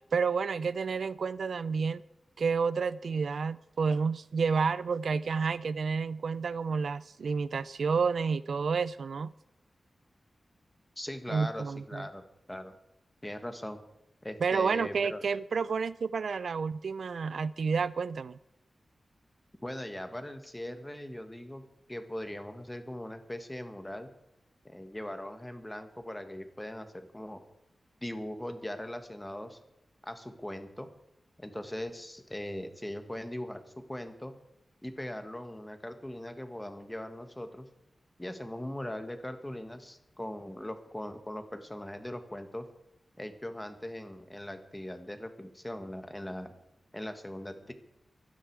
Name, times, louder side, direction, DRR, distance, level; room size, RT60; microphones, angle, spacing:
voice 1, 0.1-2.0 2.4-9.3 11.3-12.1 14.4-18.4, right 5 dB, 75° right, 17 dB, 0.5 m, -30 dB
voice 2, 11.0-12.2 12.5-12.7 13.2-13.8 14.2-15.2 19.6-21.6 21.9-24.1 24.7-27.4 28.0-29.6 30.0-30.9 31.4-33.6 33.9-34.3 34.8-37.7 38.2-42.7 43.2-46.5 46.9-47.7, left 1 dB, 10° left, 8 dB, 1.6 m, -40 dB
23.5 x 10.0 x 4.8 m, 0.87 s
wide cardioid pair, 125°, 0 cm